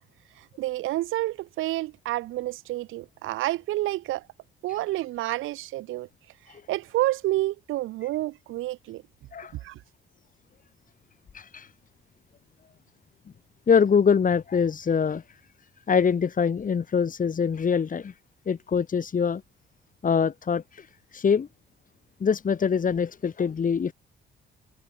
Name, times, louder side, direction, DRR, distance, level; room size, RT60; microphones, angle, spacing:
voice 1, 0.4-4.2 4.6-6.1 6.7-9.0 9.6-9.8, right 16 dB, 90° right, 1.1 m, -29 dB
voice 2, 11.3-11.7 13.7-15.2 15.9-18.1 18.5-19.4 20.0-20.9 21.1-21.5 22.2-23.9, left 6 dB, 40° left, 3.2 m, -24 dB
cardioid pair, 90°, 20 cm